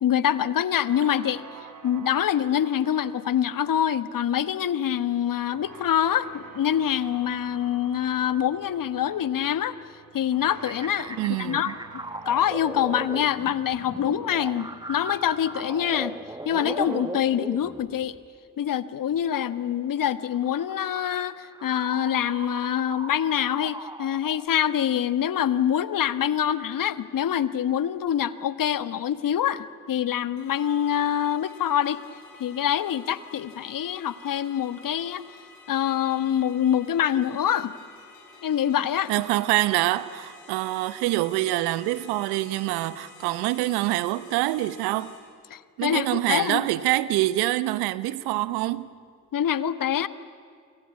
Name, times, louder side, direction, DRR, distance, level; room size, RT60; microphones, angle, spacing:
voice 1, 0.0-1.4 1.8-9.7 10.1-11.7 12.2-16.2 16.4-18.2 18.6-32.0 32.4-35.2 35.7-37.7 38.4-39.1 45.5-46.6 49.3-50.1, left 10 dB, 60° left, 1.4 m, -25 dB
sound 1, 0.9-17.0, right 5 dB, 55° right, 4.0 m, -48 dB
sound 2, 10.6-18.2 19.5-24.4, right 2 dB, 10° right, 1.5 m, -38 dB
voice 2, 11.2-11.7 39.1-45.1 45.8-48.9, right 17 dB, 85° right, 1.0 m, -25 dB
sound 3, 30.4-45.2, left 4 dB, 85° left, 5.9 m, -50 dB
29.0 x 24.5 x 8.4 m
hypercardioid pair, 50°, 38 cm